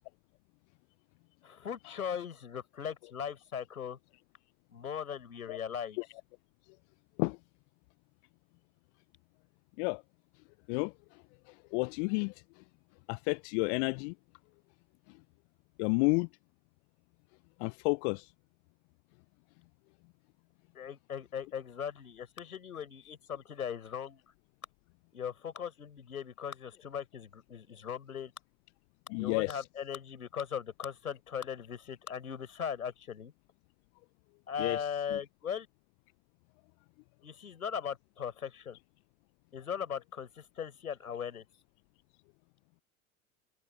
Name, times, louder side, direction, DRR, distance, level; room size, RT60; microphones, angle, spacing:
voice 1, 1.4-4.0 4.7-6.0 20.7-24.2 25.1-28.3 29.1-33.3 34.5-35.7 37.2-38.8 39.5-41.4, left 8 dB, 85° left, 5.3 m, -39 dB
voice 2, 11.7-12.3 13.1-14.1 15.8-16.3 17.6-18.3 29.1-29.6 34.6-34.8 35.1-35.2, left 32 dB, 55° left, 0.7 m, -30 dB
open air
figure-of-eight pair, 75°, 42 cm